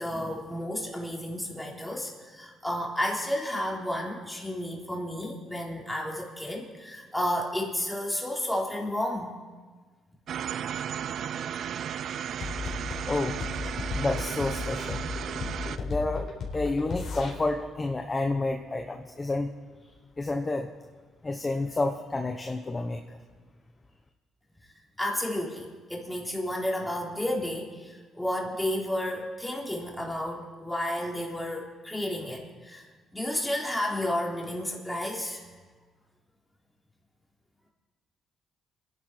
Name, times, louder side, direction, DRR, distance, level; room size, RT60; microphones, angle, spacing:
voice 1, 0.0-9.3 25.0-35.4, left 1 dB, 5° left, -2 dB, 3.6 m, -32 dB
sound 1, 10.3-15.8, right 9 dB, 65° right, 0.5 m, -34 dB
sound 2, 12.4-17.3, left 4 dB, 60° left, 4.2 m, -34 dB
voice 2, 13.0-13.4 13.9-19.5 20.2-20.7 21.2-23.2, left 2 dB, 25° left, 4 dB, 1.1 m, -30 dB
25.5 x 11.0 x 4.6 m, 1.4 s
cardioid pair, 90°, 0 cm